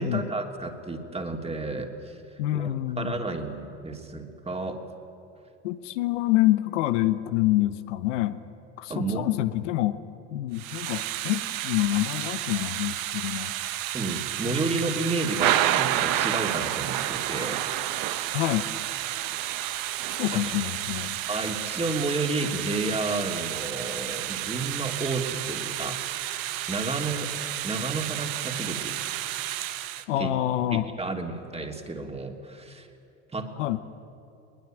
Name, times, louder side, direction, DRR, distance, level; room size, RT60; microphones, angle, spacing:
voice 1, 0.0-2.2 2.5-4.8 8.9-9.3 13.9-17.6 20.3-20.4 21.3-26.0 26.7-27.3 27.6-28.9 30.2-30.3 30.7-32.9 33.3-33.5, right 3 dB, 15° right, 3 dB, 3.1 m, -31 dB
voice 2, 2.4-3.2 5.6-8.4 8.8-10.0 10.3-13.5 14.5-14.9 18.3-18.7 20.2-21.2 30.1-30.9 33.6-33.8, left 15 dB, 80° left, 11 dB, 1.0 m, -27 dB
Thunder / Rain, 10.6-30.0, right 13 dB, 65° right, 1.2 m, -30 dB
21.5 x 20.0 x 9.1 m, 2.7 s
hypercardioid pair, 70°, 36 cm